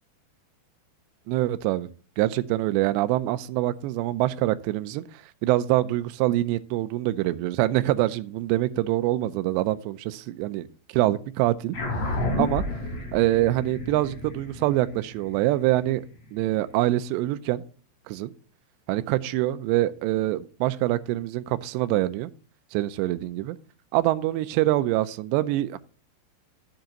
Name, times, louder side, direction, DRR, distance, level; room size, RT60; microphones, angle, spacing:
voice 1, 1.3-1.9 2.2-10.7 10.9-11.8 12.4-12.6 13.1-16.0 16.3-17.6 18.1-18.3 18.9-22.3 22.7-23.6 23.9-25.8, right 16 dB, 85° right, 2.8 m, -25 dB
sound 1, 11.7-16.5, left 1 dB, 40° left, 3.9 m, -31 dB
10.5 x 7.8 x 2.9 m
omnidirectional pair, 5.1 m